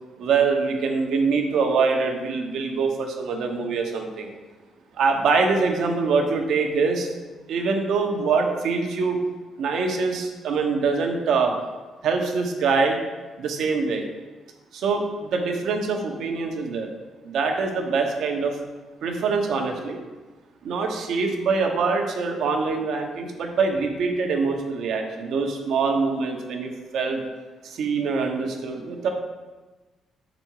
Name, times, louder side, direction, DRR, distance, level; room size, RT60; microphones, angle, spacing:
voice 1, 0.2-4.3 4.9-7.1 7.5-9.2 9.6-11.5 12.0-13.0 13.4-14.0 14.7-16.9 17.2-18.6 19.0-20.0 20.6-27.2 27.6-29.1, right 4 dB, 75° right, 3 dB, 1.1 m, -24 dB
6.9 x 5.3 x 4.7 m, 1.3 s
cardioid pair, 90°, 0 cm